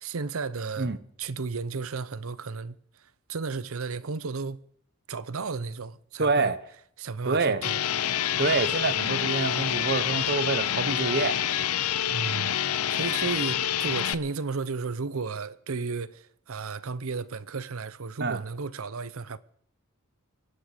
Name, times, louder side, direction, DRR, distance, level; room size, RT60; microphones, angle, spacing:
voice 1, 0.0-0.9 1.2-2.8 3.3-4.6 5.1-6.5 7.0-7.8 12.1-12.5 12.9-19.4, right 4 dB, 70° right, 0.7 m, -33 dB
voice 2, 6.2-6.6 7.2-7.6 8.4-11.4 18.2-18.4, right 3 dB, 45° right, 1.1 m, -26 dB
sound 1, 7.6-14.1, left 10 dB, 80° left, 0.6 m, -27 dB
25.0 x 9.8 x 5.1 m
head